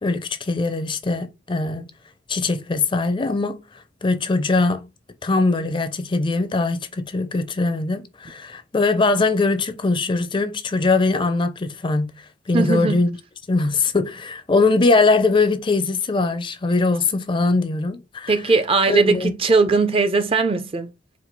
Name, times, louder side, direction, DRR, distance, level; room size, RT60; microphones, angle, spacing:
voice 1, 0.0-1.9 2.3-3.6 4.0-4.9 5.2-12.1 12.5-13.1 13.5-18.3 18.9-19.3, left 3 dB, 30° left, 0.5 m, -21 dB
voice 2, 12.5-13.0 18.3-20.9, right 4 dB, 30° right, 0.5 m, -19 dB
4.4 x 2.3 x 3.9 m
head